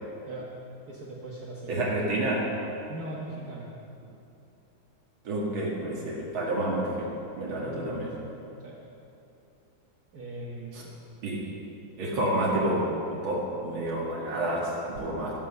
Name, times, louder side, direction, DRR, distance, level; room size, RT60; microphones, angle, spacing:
voice 1, 0.9-2.0 2.9-3.7 7.5-8.3 8.6-8.8 10.1-10.9, right 2 dB, 50° right, -4 dB, 1.7 m, -40 dB
voice 2, 1.7-2.5 5.2-7.1 7.4-8.1 10.7-10.8 11.2-11.4 12.0-15.4, right 1 dB, 85° right, -4 dB, 2.6 m, -29 dB
12.0 x 11.5 x 6.7 m, 2.8 s
omnidirectional pair, 2.2 m